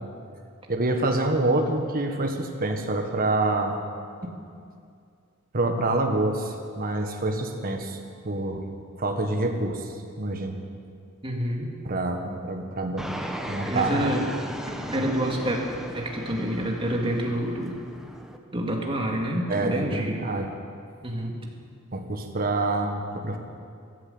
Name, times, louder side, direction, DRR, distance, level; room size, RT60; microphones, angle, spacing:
voice 1, 0.7-3.8 5.5-8.0 8.2-8.6 9.0-10.6 11.8-13.1 13.5-14.1 19.5-20.5 21.9-23.4, right 2 dB, 45° right, 4 dB, 1.5 m, -26 dB
voice 2, 11.2-11.7 13.7-14.2 14.9-15.6 15.9-17.8 18.5-20.2 21.0-21.4, equal, 25° right, 0 dB, 2.1 m, -28 dB
Fixed-wing aircraft airplane, 13.0-18.4, equal, ahead, 1.0 m, -36 dB
14.0 x 12.5 x 7.9 m, 2.3 s
head